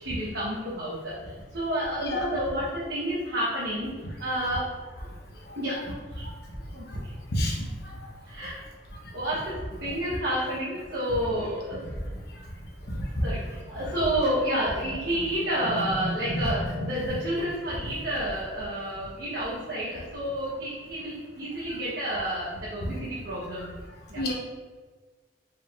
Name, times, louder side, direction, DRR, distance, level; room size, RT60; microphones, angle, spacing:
voice 1, 0.0-4.7 5.6-5.8 6.1-6.3 6.7-7.1 8.3-8.6 9.1-11.8 13.2-23.8 24.1-24.2, equal, 65° right, -8 dB, 1.0 m, -30 dB
voice 2, 7.3-8.0 12.9-13.0 16.0-16.5 22.8-22.9 24.1-24.3, equal, 60° left, -1 dB, 0.8 m, -29 dB
4.7 x 3.6 x 2.4 m, 1.4 s
head